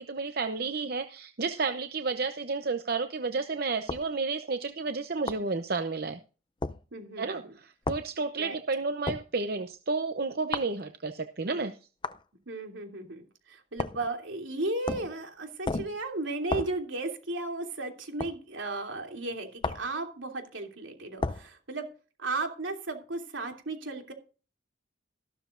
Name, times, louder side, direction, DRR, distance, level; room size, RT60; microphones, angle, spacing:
voice 1, 0.0-6.2 7.2-11.7, right 4 dB, 55° right, 8 dB, 0.8 m, -31 dB
sound 1, 3.9-4.1 5.3-5.5 6.6-6.8 7.9-8.1 9.1-9.3 10.5-10.8 12.0-12.2 13.8-14.1 14.9-15.2 15.7-16.0 16.5-16.8 18.2-18.4 19.6-19.9 21.2-21.5, left 3 dB, 25° left, 0.5 m, -33 dB
voice 2, 6.9-7.5 8.4-8.6 12.5-21.9 22.2-24.1, right 2 dB, 85° right, 3 dB, 3.0 m, -35 dB
14.5 x 12.5 x 2.6 m, 0.35 s
head